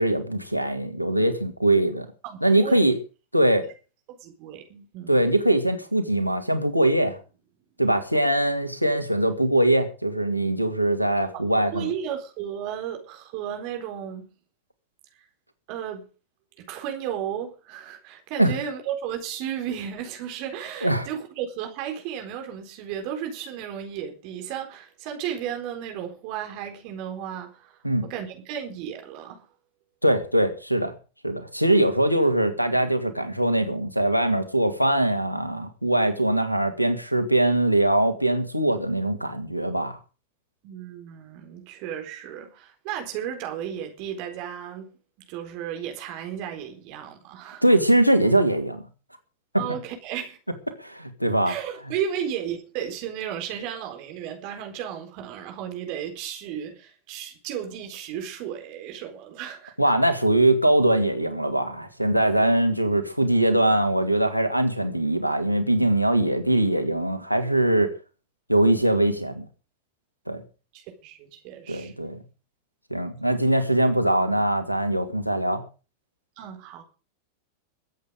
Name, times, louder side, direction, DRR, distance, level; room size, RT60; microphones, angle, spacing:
voice 1, 0.0-2.1 2.4-2.9 3.3-3.7 5.1-7.2 7.8-11.9 18.4-18.5 20.8-21.1 27.8-28.1 30.0-30.9 31.2-40.0 47.6-48.8 50.8-51.5 59.8-67.9 68.5-69.5 70.3-70.4 71.7-72.2 72.9-75.6, right 1 dB, 90° left, 2.4 m, -22 dB
voice 2, 2.2-2.9 3.6-3.7 4.2-5.2 11.3-14.3 15.2-15.3 15.7-16.1 16.6-29.5 40.6-44.9 45.3-47.6 49.6-50.4 51.5-59.8 70.7-71.9 73.3-73.4 76.4-76.8, right 9 dB, 45° right, 4.2 m, -34 dB
22.5 x 8.3 x 5.2 m
figure-of-eight pair, 90°, 0 cm